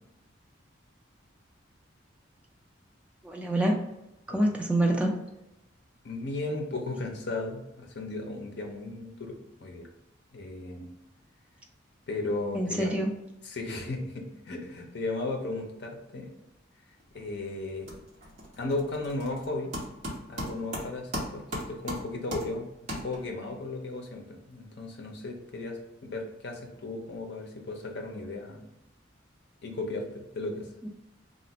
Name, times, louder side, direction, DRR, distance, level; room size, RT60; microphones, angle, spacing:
voice 1, 3.2-3.8 4.3-5.1 12.5-13.1 30.8-30.9, right 1 dB, 5° right, 0 dB, 0.3 m, -26 dB
voice 2, 6.0-9.9 10.3-10.9 12.1-12.9 13.5-16.3 17.1-17.9 18.6-19.7 20.3-28.6 29.6-30.7, left 2 dB, 60° left, 2 dB, 0.5 m, -35 dB
sound 1, 17.0-17.4 17.6-23.5, equal, 35° right, 0.9 m, -38 dB
2.5 x 2.1 x 3.9 m, 0.92 s
head